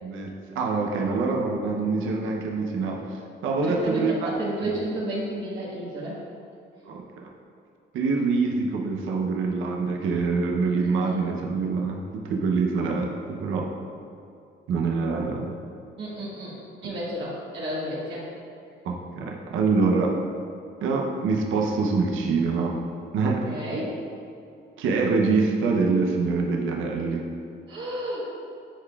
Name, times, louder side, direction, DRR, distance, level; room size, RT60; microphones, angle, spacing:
voice 1, 0.0-4.3 4.6-4.8 6.8-7.3 7.9-13.7 14.7-15.5 18.8-20.1 20.8-22.8 23.1-23.5 24.8-27.2, right 4 dB, 85° right, 0 dB, 0.7 m, -25 dB
voice 2, 3.6-6.2 16.0-16.5 16.8-18.2 23.5-23.9 27.7-28.3, right 1 dB, 70° right, -8 dB, 1.5 m, -31 dB
10.0 x 4.8 x 2.4 m, 2.5 s
cardioid pair, 90°, 20 cm